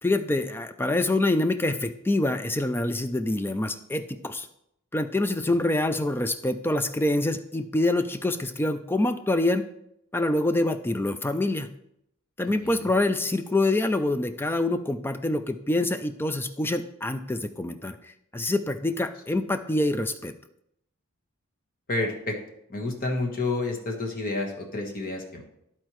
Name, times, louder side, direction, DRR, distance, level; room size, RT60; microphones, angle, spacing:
voice 1, 0.0-4.5 4.9-9.6 10.1-11.7 12.4-20.3, left 2 dB, 10° left, 10 dB, 0.3 m, -26 dB
voice 2, 21.9-22.4 22.7-25.4, left 2 dB, 40° left, 1 dB, 1.3 m, -29 dB
13.0 x 4.4 x 3.1 m, 0.78 s
head